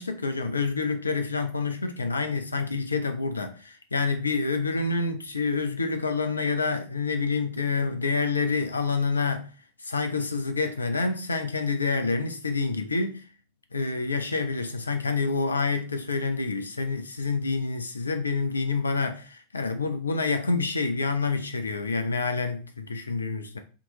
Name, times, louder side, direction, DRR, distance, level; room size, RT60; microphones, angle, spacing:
voice 1, 0.0-9.5 9.8-13.2 13.7-23.6, left 4 dB, 75° left, 0.5 m, -27 dB
3.6 x 3.0 x 3.6 m
figure-of-eight pair, 90°, 0 cm